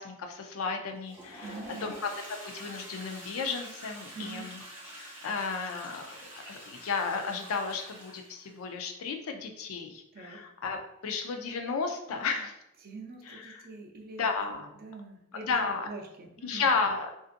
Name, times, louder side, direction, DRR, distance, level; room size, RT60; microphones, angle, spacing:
voice 1, 0.0-4.6 5.0-6.1 6.5-12.5 13.3-13.7 14.2-14.7 15.4-15.9 16.4-17.1, left 5 dB, 75° left, 5 dB, 0.4 m, -33 dB
Toilet flush, 0.9-8.6, equal, 10° right, 0.8 m, -46 dB
voice 2, 1.4-2.0 4.1-4.5 10.1-10.4 12.1-12.4 12.8-15.6 15.9-16.7, right 3 dB, 45° right, 0 dB, 0.5 m, -44 dB
2.5 x 2.5 x 2.4 m, 0.82 s
head